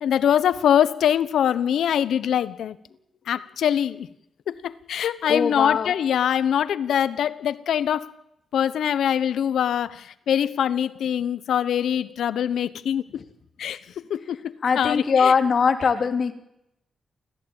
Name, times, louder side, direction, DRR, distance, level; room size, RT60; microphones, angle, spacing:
voice 1, 0.0-2.8 3.3-4.1 4.5-8.1 8.5-13.0 13.6-13.8 14.1-15.3, left 9 dB, 90° left, 1.1 m, -23 dB
voice 2, 5.2-5.9 13.1-13.2 14.6-16.3, left 6 dB, 45° left, 2.7 m, -21 dB
29.0 x 14.5 x 9.0 m
wide cardioid pair, 150°, 0 cm